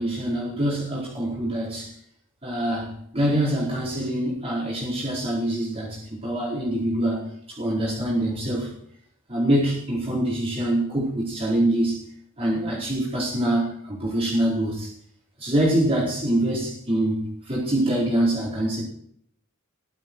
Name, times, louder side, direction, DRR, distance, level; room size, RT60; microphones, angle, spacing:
voice 1, 0.0-1.9 2.4-8.7 9.3-12.0 12.4-14.9 15.4-18.8, right 1 dB, 30° right, -6 dB, 4.7 m, -25 dB
15.5 x 12.0 x 4.7 m, 0.70 s
head